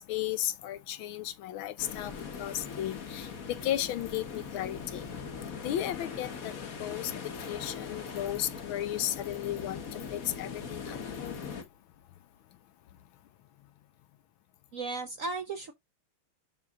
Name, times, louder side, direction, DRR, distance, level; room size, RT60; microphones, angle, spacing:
voice 1, 0.0-5.0 5.6-6.5 6.8-7.1 7.5-11.5, left 12 dB, 75° left, 1.5 m, -35 dB
sound 1, 1.8-11.6, left 6 dB, 45° left, 1.6 m, -40 dB
voice 2, 14.7-15.7, right 3 dB, 55° right, 0.9 m, -35 dB
11.5 x 4.1 x 2.4 m
omnidirectional pair, 2.3 m